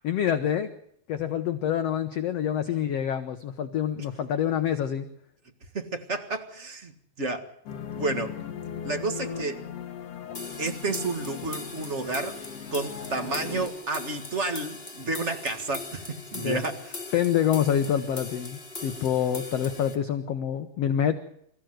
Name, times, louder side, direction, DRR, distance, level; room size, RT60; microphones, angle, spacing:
voice 1, 0.0-0.8 1.1-5.1 16.3-16.6 17.1-21.2, left 9 dB, 70° left, 9 dB, 1.5 m, -26 dB
voice 2, 5.7-6.9 7.2-7.5 8.0-8.4 8.8-9.6 10.6-12.4 12.7-16.9, right 3 dB, 45° right, 5 dB, 0.9 m, -31 dB
sound 1, 7.7-13.7, left 8 dB, 50° left, 2.3 m, -38 dB
sound 2, 10.3-19.9, left 3 dB, 20° left, 2.4 m, -40 dB
27.5 x 15.0 x 7.8 m, 0.72 s
omnidirectional pair, 4.2 m